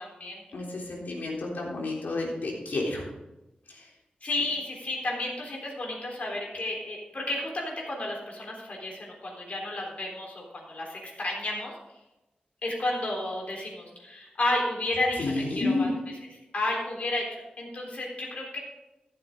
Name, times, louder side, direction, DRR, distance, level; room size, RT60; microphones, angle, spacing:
voice 1, 0.0-0.4 4.2-11.7 12.6-15.9 16.5-18.6, left 2 dB, 50° left, -1 dB, 3.7 m, -32 dB
voice 2, 0.5-3.0 3.7-3.9 15.2-15.9, left 2 dB, 80° left, -3 dB, 3.5 m, -30 dB
14.0 x 8.5 x 3.9 m, 0.97 s
wide cardioid pair, 115°, 3 cm